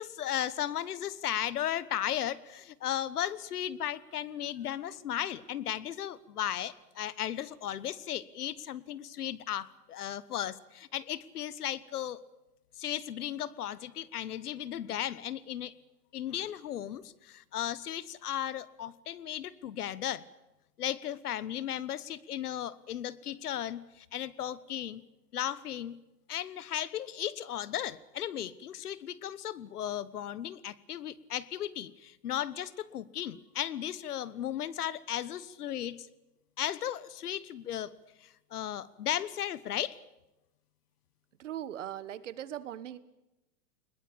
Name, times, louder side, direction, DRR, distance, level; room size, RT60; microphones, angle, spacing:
voice 1, 0.0-12.2 12.8-15.8 16.1-20.2 20.8-25.0 25.3-26.0 26.3-36.1 36.6-37.9 38.2-40.0, left 11 dB, 65° left, 19 dB, 1.2 m, -36 dB
voice 2, 41.4-43.0, right 11 dB, 50° right, 16 dB, 1.2 m, -39 dB
21.0 x 20.0 x 8.7 m, 0.98 s
hypercardioid pair, 175°, 49 cm